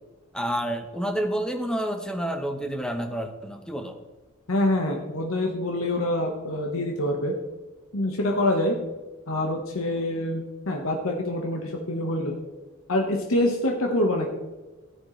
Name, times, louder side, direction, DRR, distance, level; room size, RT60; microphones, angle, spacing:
voice 1, 0.3-4.0, right 1 dB, 5° left, 5 dB, 0.9 m, -29 dB
voice 2, 4.5-7.3 7.9-8.7 9.3-12.4 12.9-14.3, left 1 dB, 80° left, 1 dB, 1.3 m, -25 dB
14.5 x 9.7 x 3.2 m, 1.2 s
head